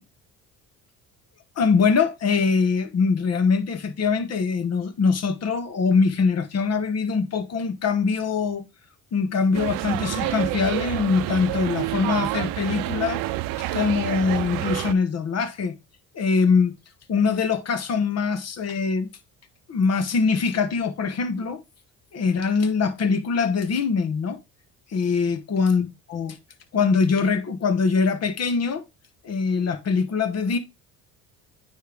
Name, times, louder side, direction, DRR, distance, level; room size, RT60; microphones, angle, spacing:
voice 1, 1.6-8.6 9.1-13.2 13.6-15.7 16.1-16.7 17.1-19.1 19.7-21.6 22.1-24.4 24.9-26.4 26.7-28.8 29.2-30.6, left 5 dB, 45° left, 1.3 m, -23 dB
sound 1, 9.5-14.9, right 16 dB, 75° right, 0.6 m, -28 dB
9.2 x 3.3 x 3.5 m
supercardioid pair, 80°, 34 cm